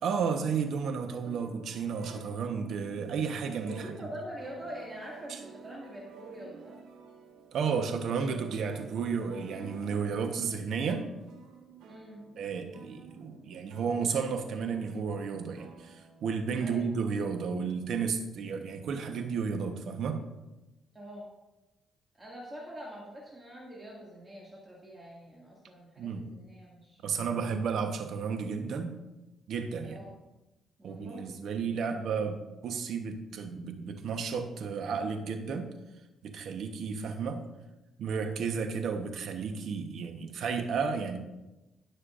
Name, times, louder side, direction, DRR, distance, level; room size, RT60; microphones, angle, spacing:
voice 1, 0.0-3.9 5.3-5.4 7.5-11.0 12.4-20.2 26.0-26.2 27.0-29.0 29.5-30.0 30.8-35.6 36.2-37.4 38.0-41.2, right 5 dB, 70° right, 6 dB, 1.1 m, -32 dB
sound 1, 1.1-17.5, right 5 dB, 90° right, 1.5 m, -52 dB
voice 2, 3.7-6.8 11.9-12.2 16.6-16.9 20.9-21.3 22.1-27.2 29.8-30.1 30.8-31.5, equal, 20° right, -4 dB, 2.2 m, -45 dB
17.0 x 6.6 x 2.6 m, 1.0 s
cardioid pair, 90°, 0 cm